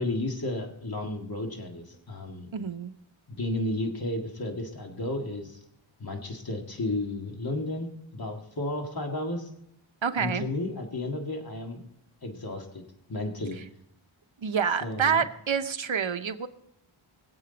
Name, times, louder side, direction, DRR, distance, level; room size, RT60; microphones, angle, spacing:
voice 1, 0.0-2.5 3.3-5.6 6.0-9.5 10.2-11.8 12.2-13.6 14.8-15.2, left 2 dB, 45° left, 2 dB, 2.0 m, -33 dB
voice 2, 2.5-2.9 10.0-10.4 14.4-16.5, right 6 dB, 65° right, 9 dB, 0.9 m, -27 dB
22.0 x 7.8 x 4.0 m, 0.75 s
wide cardioid pair, 70°, 50 cm